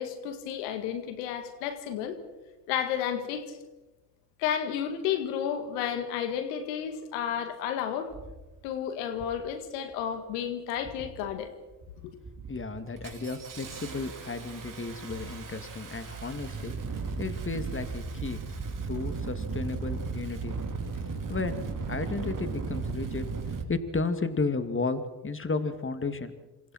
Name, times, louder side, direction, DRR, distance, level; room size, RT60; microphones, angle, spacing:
voice 1, 0.0-2.2 2.7-3.6 4.4-8.1 8.6-11.5 12.0-12.1, left 9 dB, 80° left, 8 dB, 2.0 m, -32 dB
Engine starting, 7.3-7.4 8.1-8.4 9.1-9.5 9.8-10.3 10.8-11.3 11.7-11.9 12.2-23.6, right 4 dB, 40° right, 4.2 m, -36 dB
voice 2, 12.5-16.8 17.2-18.5 18.9-20.6 21.3-23.3 23.7-26.4, left 3 dB, 25° left, 9 dB, 2.5 m, -33 dB
28.0 x 25.5 x 4.5 m, 1.1 s
hypercardioid pair, 55°, 48 cm